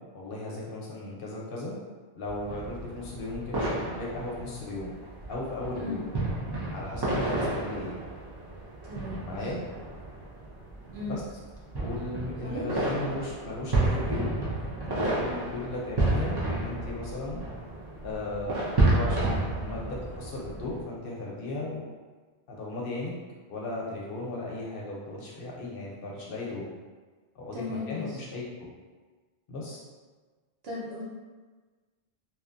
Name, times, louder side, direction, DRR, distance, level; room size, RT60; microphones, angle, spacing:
voice 1, 0.1-1.7 2.2-4.9 5.3-6.1 6.7-8.0 9.2-9.6 11.0-11.2 11.8-14.4 14.8-17.4 18.0-18.6 18.8-21.8 22.5-23.1 23.5-26.6 27.3-28.7 29.5-29.8, left 2 dB, 60° left, -4 dB, 0.7 m, -36 dB
sound 1, 2.2-20.8, right 2 dB, 35° right, 0.4 m, -31 dB
voice 2, 8.8-9.5 10.9-11.2 12.4-13.1 27.5-28.2 30.6-31.0, left 2 dB, 70° right, -6 dB, 1.0 m, -37 dB
2.8 x 2.4 x 2.5 m, 1.4 s
omnidirectional pair, 1.1 m